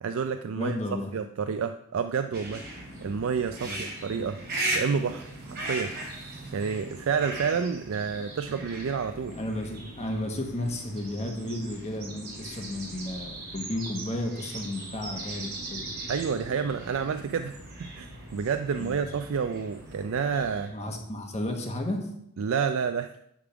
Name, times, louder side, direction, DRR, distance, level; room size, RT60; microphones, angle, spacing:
voice 1, 0.0-0.8 1.1-2.6 3.0-4.4 4.7-5.9 6.5-9.4 16.1-20.7 22.4-23.1, right 6 dB, 65° right, 8 dB, 0.4 m, -29 dB
voice 2, 0.5-1.1 3.7-3.8 9.3-15.8 18.7-19.0 20.7-22.1, left 1 dB, 30° left, 2 dB, 1.2 m, -33 dB
sound 1, 2.3-20.7, right 2 dB, 50° right, 2.7 m, -38 dB
10.0 x 3.6 x 5.9 m, 0.75 s
head